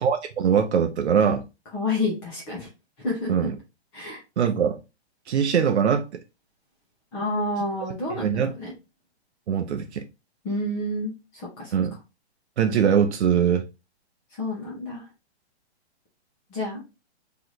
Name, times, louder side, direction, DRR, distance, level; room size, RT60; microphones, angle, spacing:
voice 1, 0.0-1.4 3.3-3.6 4.4-4.8 5.3-6.1 8.1-8.5 9.5-10.0 11.7-12.0 12.6-13.7, right 7 dB, 80° right, 0.7 m, -22 dB
voice 2, 1.7-2.7 3.0-3.5 3.9-4.2 7.1-8.7 10.4-11.7 14.3-15.1 16.5-16.8, left 2 dB, 15° left, 0.9 m, -29 dB
3.3 x 2.9 x 3.9 m
hypercardioid pair, 170°, 33 cm